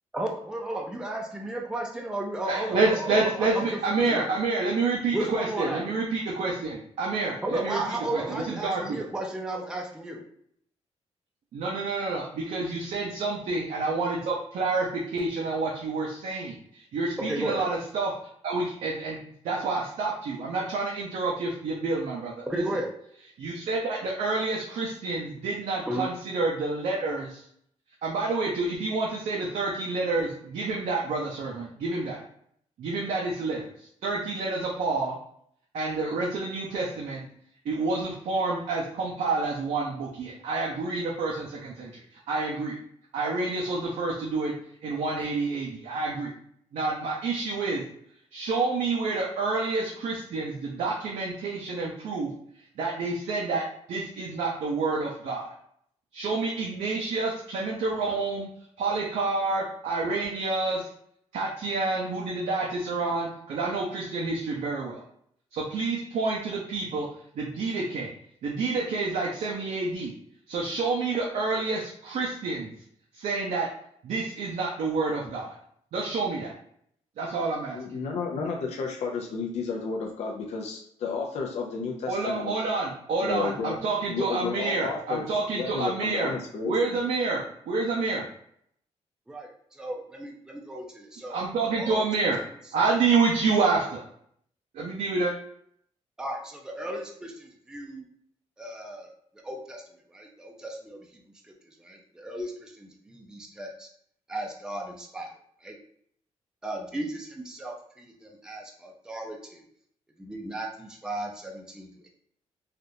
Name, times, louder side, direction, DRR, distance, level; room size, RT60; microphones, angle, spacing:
voice 1, 0.1-4.3 5.1-5.9 7.4-10.2 17.2-17.6 22.5-22.9 25.9-26.1 89.3-91.4 91.8-92.0 96.2-98.0 98.6-99.1 99.4-99.8 100.1-103.9 104.3-105.3 105.6-105.8 106.6-109.6 110.2-112.1, right 1 dB, 5° right, 0 dB, 0.4 m, -34 dB
voice 2, 2.4-9.0 11.5-18.1 18.4-19.2 19.4-22.6 23.4-27.4 28.0-32.2 32.8-33.7 34.0-35.2 35.7-37.2 37.6-42.8 43.1-44.5 44.8-46.3 46.7-47.8 48.3-52.3 52.8-53.6 53.9-55.5 56.1-58.5 58.8-60.9 61.3-65.0 65.5-67.1 67.4-68.1 68.4-70.1 70.5-72.7 73.1-73.7 74.0-75.6 75.9-76.5 77.2-77.8 82.1-86.3 86.7-88.2 91.3-92.4 92.7-94.0 94.7-95.3, right 3 dB, 80° right, -3 dB, 0.6 m, -28 dB
voice 3, 77.7-82.5 83.2-83.8 84.1-85.2 85.5-87.0, left 5 dB, 70° left, 0 dB, 0.5 m, -32 dB
3.4 x 2.4 x 2.6 m, 0.67 s
cardioid pair, 125°, 12 cm